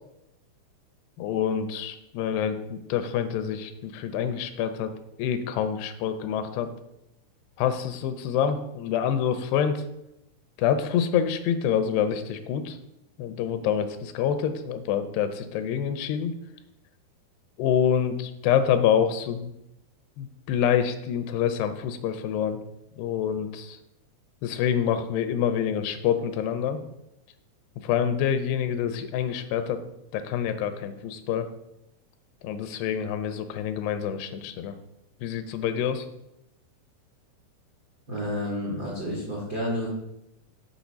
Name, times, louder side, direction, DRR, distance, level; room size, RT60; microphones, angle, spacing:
voice 1, 1.2-4.9 5.2-6.7 7.6-9.8 10.6-12.8 13.2-16.3 17.6-19.5 20.2-22.6 23.0-23.8 24.4-26.8 27.8-29.8 30.1-31.5 32.4-34.8 35.2-36.1, left 8 dB, 85° left, 10 dB, 2.6 m, -26 dB
voice 2, 38.1-39.9, equal, 85° right, -5 dB, 0.9 m, -30 dB
7.1 x 4.4 x 5.2 m, 0.85 s
omnidirectional pair, 4.7 m